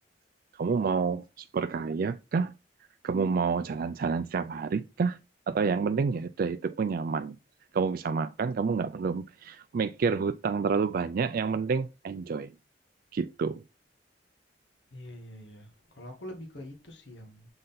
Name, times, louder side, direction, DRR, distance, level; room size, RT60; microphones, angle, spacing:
voice 1, 0.6-2.5 3.0-5.2 5.5-7.3 7.7-12.5 13.1-13.6, right 5 dB, 55° right, 0.3 m, -29 dB
voice 2, 14.9-15.7 16.0-17.5, left 1 dB, 80° left, 1.6 m, -44 dB
7.7 x 4.0 x 4.0 m
head